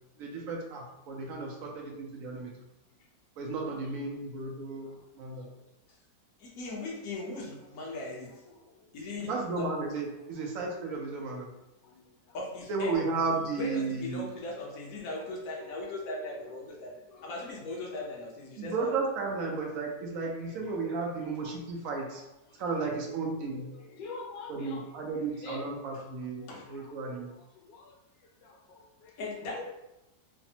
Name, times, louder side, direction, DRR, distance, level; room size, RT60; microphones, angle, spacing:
voice 1, 0.2-2.5 3.4-5.4 9.3-11.5 12.7-14.3 18.6-22.2 22.6-23.7 24.5-27.3, right 4 dB, 75° right, -1 dB, 0.8 m, -34 dB
voice 2, 6.4-8.4 8.9-9.7 12.3-12.9 13.3-18.9 22.5-22.6 25.9-26.0 26.5-26.7 29.2-29.6, left 2 dB, 60° left, -3 dB, 1.1 m, -39 dB
voice 3, 23.4-24.8 25.4-26.0 26.4-26.5 27.7-28.0 28.4-29.1, left 3 dB, 85° left, 1 dB, 1.2 m, -45 dB
3.3 x 2.0 x 2.7 m, 0.92 s
omnidirectional pair, 1.9 m